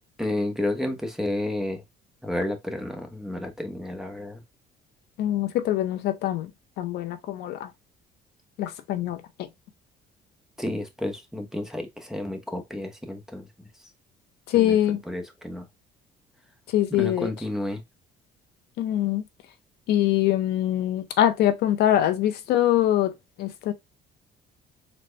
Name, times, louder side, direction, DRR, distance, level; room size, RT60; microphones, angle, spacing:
voice 1, 0.2-1.8 2.2-4.4 10.6-13.7 14.5-14.8 15.1-15.7 17.0-17.8, left 1 dB, 5° right, 0.8 m, -31 dB
voice 2, 5.2-6.5 6.8-7.7 8.6-9.2 14.5-15.0 16.7-17.3 18.8-19.2 19.9-23.1 23.4-23.7, left 12 dB, 75° left, 0.6 m, -23 dB
4.0 x 2.1 x 3.2 m
cardioid pair, 110°, 17 cm